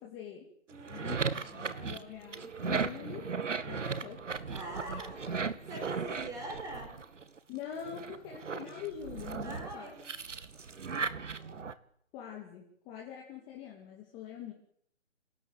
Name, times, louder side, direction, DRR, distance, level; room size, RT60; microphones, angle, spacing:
voice 1, 0.0-0.5 0.9-3.3 3.6-4.2 5.9-6.1 7.5-9.9 12.1-14.5, left 9 dB, 15° left, 0 dB, 2.5 m, -44 dB
voice 2, 0.7-1.6 4.5-7.1 9.4-10.2, right 1 dB, 10° right, 4 dB, 5.2 m, -44 dB
sound 1, 0.7-7.4 7.8-11.7, right 5 dB, 75° right, 2.3 m, -37 dB
28.0 x 17.5 x 9.2 m, 0.69 s
hypercardioid pair, 165°, 38 cm